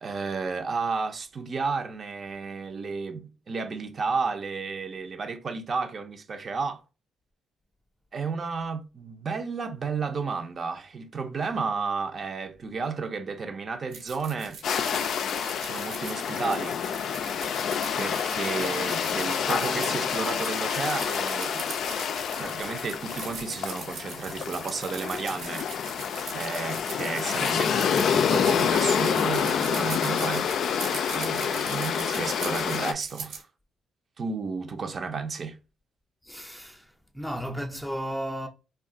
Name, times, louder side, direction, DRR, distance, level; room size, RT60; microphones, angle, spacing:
voice 1, 0.0-6.8 8.1-14.6 15.6-16.8 18.0-21.6 22.4-25.7 26.3-30.5 31.1-33.5 34.2-35.6, right 4 dB, 45° right, 0.5 m, -32 dB
sound 1, 13.9-33.4, right 5 dB, 85° right, 1.0 m, -41 dB
sound 2, 14.6-32.9, left 7 dB, 65° left, 0.3 m, -28 dB
voice 2, 36.2-38.5, equal, 5° left, 0.5 m, -34 dB
2.4 x 2.2 x 3.6 m
cardioid pair, 90°, 0 cm